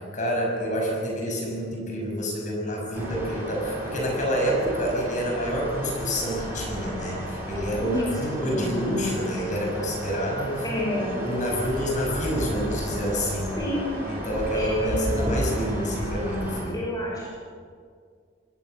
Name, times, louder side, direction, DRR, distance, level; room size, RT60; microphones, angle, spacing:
voice 1, 0.0-10.6 10.9-13.6 14.1-16.9, equal, 40° left, 0 dB, 6.2 m, -28 dB
sound 1, 2.9-16.6, equal, 15° right, 7.5 m, -33 dB
voice 2, 7.8-8.7 10.6-11.2 13.6-13.9 14.5-15.4 16.7-17.3, left 1 dB, 20° left, -3 dB, 5.5 m, -29 dB
26.0 x 19.5 x 6.6 m, 2.1 s
head